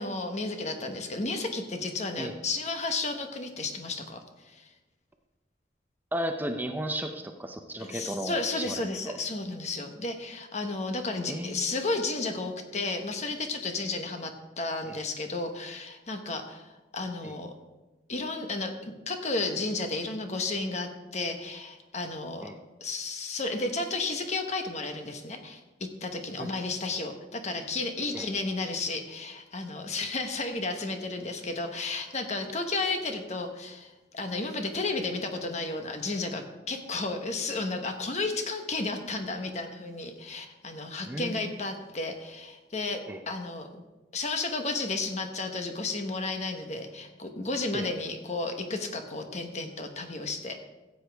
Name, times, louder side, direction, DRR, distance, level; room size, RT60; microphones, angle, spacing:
voice 1, 0.0-4.7 7.8-17.5 18.1-22.5 22.8-43.7 44.1-50.5, left 3 dB, 40° left, 5 dB, 1.1 m, -33 dB
voice 2, 6.1-8.8 11.3-11.6 14.9-15.0 17.2-17.3 22.4-22.6 26.4-26.5 28.1-28.3 41.1-41.4 43.1-43.2 47.7-47.9, right 1 dB, 10° right, 5 dB, 0.6 m, -34 dB
15.0 x 8.1 x 3.5 m, 1.1 s
head